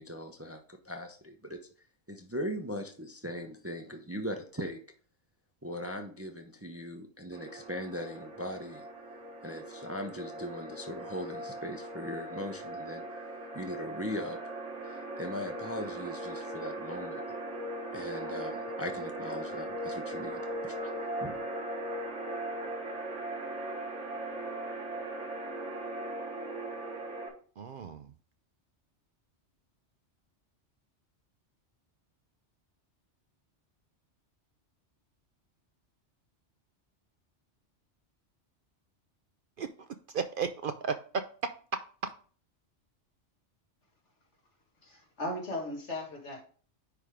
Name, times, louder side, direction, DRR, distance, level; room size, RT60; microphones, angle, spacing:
voice 1, 0.0-1.6 2.1-4.8 5.6-8.9 9.4-13.0 13.5-14.4 14.8-17.2 17.9-20.9 21.2-21.4, equal, 15° right, 5 dB, 0.6 m, -39 dB
sound 1, 7.3-27.3, right 1 dB, 85° right, 2.0 m, -39 dB
voice 2, 27.6-28.1 39.6-39.7 40.1-42.1, right 5 dB, 60° right, 9 dB, 0.6 m, -34 dB
voice 3, 44.8-46.4, left 1 dB, 75° left, 1 dB, 2.1 m, -37 dB
9.6 x 3.4 x 5.0 m, 0.42 s
omnidirectional pair, 1.2 m